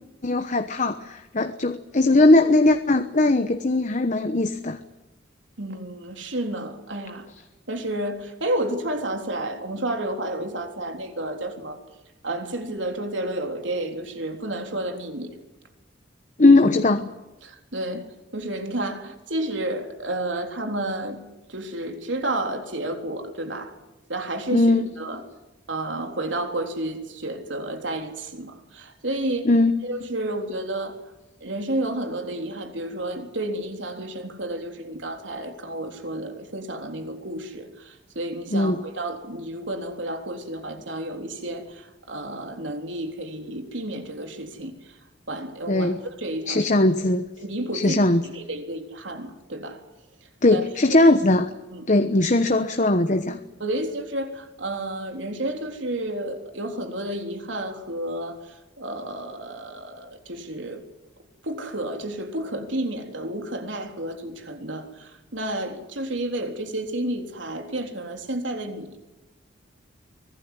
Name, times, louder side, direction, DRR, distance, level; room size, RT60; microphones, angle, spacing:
voice 1, 0.2-4.8 16.4-17.1 24.5-24.9 29.4-29.8 38.5-38.8 45.7-46.0 46.5-47.2 47.7-48.2 50.4-51.5 51.9-53.4, left 2 dB, 40° left, 8 dB, 1.1 m, -19 dB
voice 2, 5.6-7.3 7.7-11.8 12.2-15.3 17.4-18.0 18.3-21.2 21.5-23.7 24.1-24.7 25.0-25.2 25.7-29.5 29.8-30.9 31.4-41.8 42.1-44.7 45.3-45.9 46.2-46.6 47.4-49.8 50.5-50.6 50.9-51.0 51.7-51.8 53.6-58.4 58.8-60.8 61.4-68.9, right 1 dB, 75° right, 4 dB, 3.7 m, -31 dB
24.5 x 18.5 x 9.7 m, 1.0 s
head